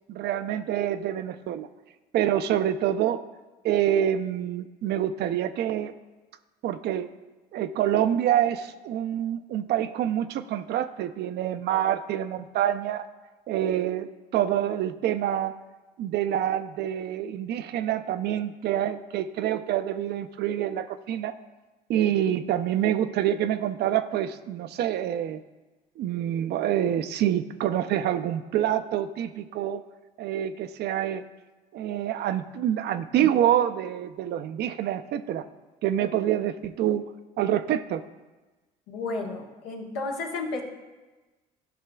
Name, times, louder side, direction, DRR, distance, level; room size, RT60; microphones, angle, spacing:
voice 1, 0.1-1.7 2.1-3.2 3.6-5.9 6.6-7.1 7.5-13.1 13.5-15.5 16.0-21.3 21.9-25.4 26.0-29.8 30.2-31.2 31.7-35.4 35.8-37.0 37.4-38.0, right 11 dB, 55° right, 10 dB, 0.5 m, -26 dB
voice 2, 38.9-40.6, left 3 dB, 75° left, 0 dB, 1.3 m, -32 dB
12.5 x 5.6 x 2.3 m, 1.2 s
hypercardioid pair, 65°, 20 cm